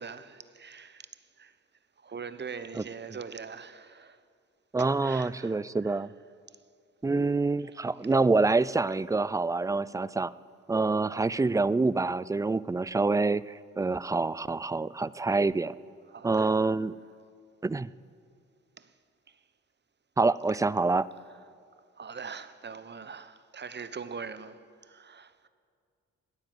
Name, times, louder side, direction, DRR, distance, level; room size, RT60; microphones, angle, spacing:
voice 1, 0.0-1.6 2.0-4.2 4.8-6.1 7.6-7.8 16.1-16.5 18.8-18.9 19.3-19.4 22.0-25.5, right 5 dB, 35° right, 0.9 m, -43 dB
voice 2, 4.7-6.1 7.0-10.3 10.7-15.8 16.2-17.0 17.6-17.9 20.2-21.1, right 3 dB, 10° right, 0.3 m, -26 dB
17.0 x 9.8 x 7.8 m
supercardioid pair, 60°, 31 cm